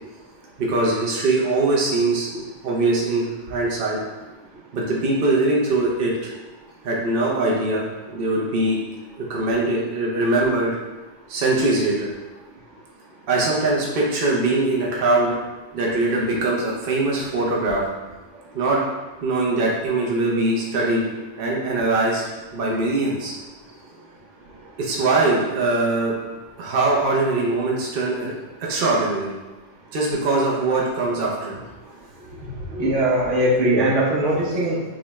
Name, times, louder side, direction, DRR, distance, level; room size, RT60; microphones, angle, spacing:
voice 1, 0.6-2.3 2.6-4.0 4.7-6.1 6.8-8.8 9.2-10.7 11.3-12.1 13.3-15.4 15.7-17.8 18.5-18.8 19.2-21.0 21.4-22.2 22.5-23.3 24.8-26.1 26.6-28.3 28.6-29.3 29.9-31.5, right 2 dB, 55° right, -3 dB, 0.9 m, -22 dB
voice 2, 32.7-35.0, right 1 dB, 80° right, -4 dB, 1.3 m, -20 dB
6.2 x 2.3 x 3.1 m, 1.2 s
omnidirectional pair, 1.2 m